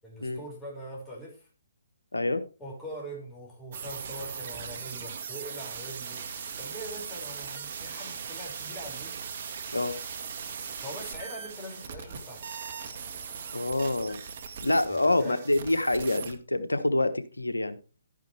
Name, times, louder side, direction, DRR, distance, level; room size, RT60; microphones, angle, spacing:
voice 1, 0.0-1.5 2.6-9.2 10.8-12.4 14.9-15.4, right 1 dB, 10° left, -4 dB, 5.8 m, -42 dB
voice 2, 2.1-2.4 9.7-10.0 13.5-14.2 14.6-17.8, left 2 dB, 90° left, 10 dB, 1.3 m, -26 dB
sound 1, 3.7-16.4, right 6 dB, 50° right, 1.8 m, -39 dB
sound 2, 6.2-13.7, right 2 dB, 20° right, 5.6 m, -56 dB
12.0 x 10.0 x 3.4 m, 0.33 s
figure-of-eight pair, 140°, 0 cm